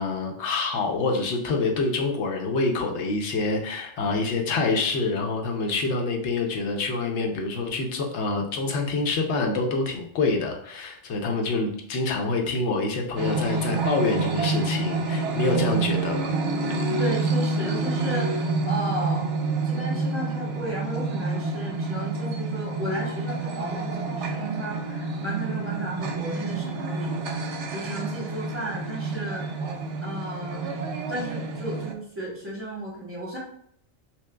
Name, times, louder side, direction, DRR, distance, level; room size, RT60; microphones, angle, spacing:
voice 1, 0.0-16.3, left 3 dB, 65° left, 3 dB, 0.9 m, -26 dB
sound 1, 13.2-31.9, right 3 dB, 70° right, 0.8 m, -28 dB
voice 2, 17.0-19.3 19.6-30.6 31.1-33.4, right 1 dB, 10° right, -5 dB, 1.0 m, -34 dB
6.0 x 2.1 x 2.2 m, 0.66 s
omnidirectional pair, 1.3 m